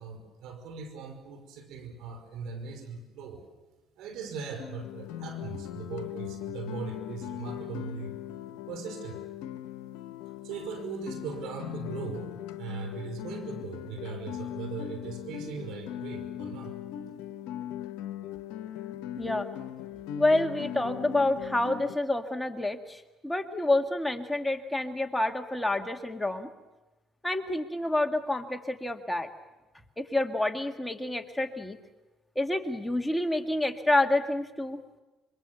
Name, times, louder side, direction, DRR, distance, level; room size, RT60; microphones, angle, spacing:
voice 1, 0.0-3.4 4.0-8.1 8.7-9.2 10.4-12.3 12.6-16.8, right 5 dB, 80° right, 6 dB, 5.4 m, -39 dB
Guitar, 4.6-22.0, left 11 dB, 85° left, 1.0 m, -39 dB
voice 2, 19.2-19.5 20.2-26.5 27.2-29.3 30.0-31.8 32.4-34.8, left 2 dB, 10° left, 5 dB, 2.0 m, -28 dB
26.0 x 24.0 x 7.0 m, 1.1 s
supercardioid pair, 70°, 0 cm